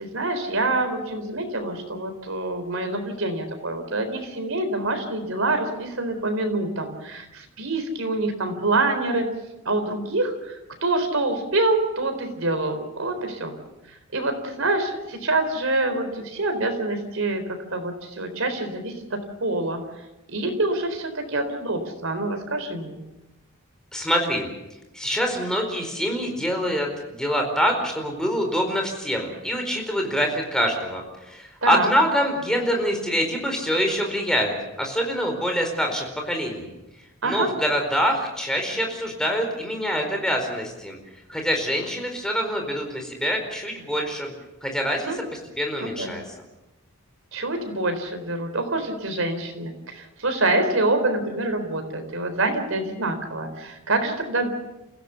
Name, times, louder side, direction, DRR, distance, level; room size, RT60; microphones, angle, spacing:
voice 1, 0.0-9.3 9.6-13.6 14.1-19.8 20.3-23.0 31.6-31.9 37.2-37.5 45.1-45.2 45.8-46.1 47.3-54.5, right 2 dB, 70° right, 7 dB, 4.2 m, -26 dB
voice 2, 23.9-24.5 24.9-36.7 37.2-41.0 41.3-44.3 44.6-45.1 45.6-46.2, equal, 5° left, 2 dB, 4.5 m, -25 dB
29.0 x 16.5 x 7.0 m, 0.96 s
head